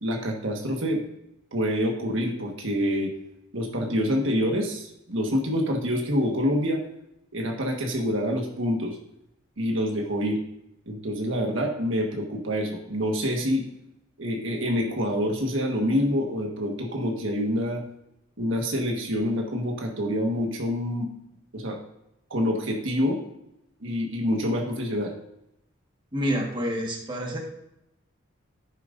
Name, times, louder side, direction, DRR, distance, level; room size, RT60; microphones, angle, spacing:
voice 1, 0.0-1.0 1.5-3.1 3.5-6.8 7.3-9.0 9.6-10.4 10.9-13.7 14.2-17.8 18.4-21.1 21.5-21.8 22.3-23.2 23.8-25.1, equal, 65° right, 1 dB, 1.5 m, -26 dB
voice 2, 26.1-27.4, equal, 25° right, 0 dB, 1.6 m, -28 dB
11.0 x 9.1 x 2.6 m, 0.83 s
head